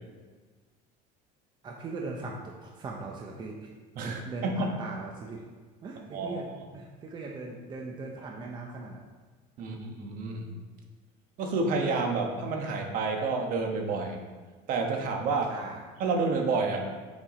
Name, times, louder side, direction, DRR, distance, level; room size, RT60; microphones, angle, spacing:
voice 1, 1.6-3.5 4.0-5.4 5.8-9.0 9.7-9.8 15.5-15.8, right 3 dB, 25° right, 0 dB, 0.7 m, -39 dB
voice 2, 3.9-4.7 6.1-6.4 9.6-10.5 11.4-14.2 14.7-15.6 16.0-16.9, right 3 dB, 50° right, 3 dB, 1.2 m, -29 dB
7.3 x 4.7 x 4.9 m, 1.4 s
cardioid pair, 145°, 18 cm